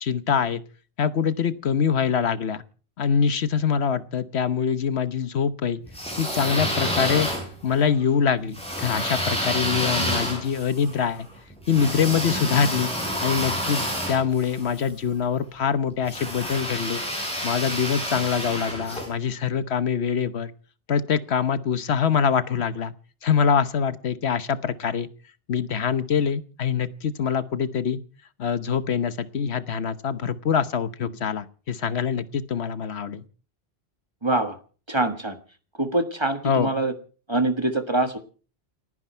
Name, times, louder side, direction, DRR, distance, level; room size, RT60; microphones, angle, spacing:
voice 1, 0.0-0.6 1.0-2.6 3.0-5.8 6.2-7.3 7.6-11.3 11.7-12.9 13.2-13.8 14.1-17.0 17.4-20.5 20.9-22.9 23.2-25.1 25.5-28.0 28.4-33.2 36.4-36.7, left 7 dB, 80° left, 13 dB, 1.3 m, -24 dB
sound 1, 5.9-7.8 8.5-14.9 16.0-19.1, equal, 5° left, 6.4 m, -29 dB
voice 2, 34.2-34.6 34.9-35.4 35.8-36.9 37.3-38.2, right 2 dB, 25° right, 8 dB, 1.5 m, -24 dB
29.5 x 9.9 x 4.5 m, 0.40 s
omnidirectional pair, 1.1 m